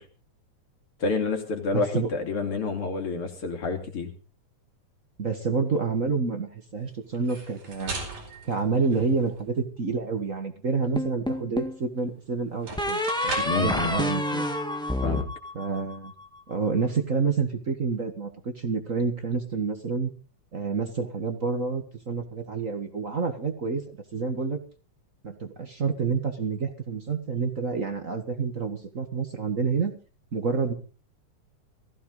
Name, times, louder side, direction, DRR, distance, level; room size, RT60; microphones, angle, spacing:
voice 1, 1.0-4.1 13.4-14.0 15.0-15.3, left 4 dB, 45° left, 5 dB, 3.4 m, -28 dB
voice 2, 1.7-2.1 5.2-6.5 6.7-7.9 8.4-14.4 15.5-16.1 16.5-20.1 20.5-23.8 24.1-24.6 25.2-29.9 30.3-30.7, right 4 dB, 35° right, 6 dB, 1.4 m, -28 dB
sound 1, 7.1-9.5 12.0-12.1 12.5-13.7, right 3 dB, 80° right, 6.1 m, -38 dB
sound 2, 10.9-11.8 12.8-16.1, left 1 dB, 5° left, 0.7 m, -28 dB
18.5 x 15.5 x 3.9 m, 0.37 s
omnidirectional pair, 3.5 m